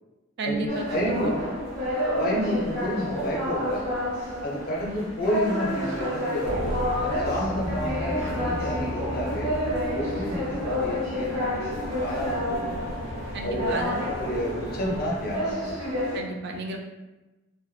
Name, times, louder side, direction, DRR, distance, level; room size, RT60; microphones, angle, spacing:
voice 1, 0.4-1.3 13.3-14.1 16.1-16.8, right 2 dB, 50° right, 2 dB, 0.3 m, -32 dB
sound 1, 0.7-16.2, equal, 85° right, 1.1 m, -29 dB
voice 2, 0.9-1.5 2.1-3.9 4.4-9.5 9.9-12.7 13.4-15.5, equal, 45° left, -3 dB, 0.5 m, -30 dB
sound 2, 6.4-15.1, equal, 20° right, 1.0 m, -35 dB
2.6 x 2.1 x 2.3 m, 1.1 s
head